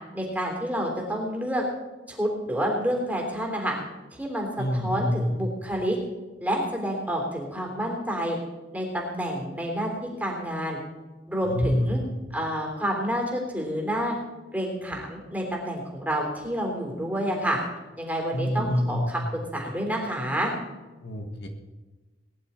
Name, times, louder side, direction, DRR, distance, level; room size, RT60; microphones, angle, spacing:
voice 1, 0.1-1.6 2.1-3.8 4.2-6.0 6.4-8.4 8.7-9.9 10.2-10.8 11.3-12.0 12.3-14.1 14.5-17.6 18.0-20.5, equal, 10° right, 0 dB, 3.4 m, -29 dB
voice 2, 4.6-5.3 11.5-11.9 18.3-19.1 21.0-21.5, left 1 dB, 65° left, 4 dB, 1.6 m, -26 dB
20.0 x 10.5 x 4.4 m, 1.2 s
head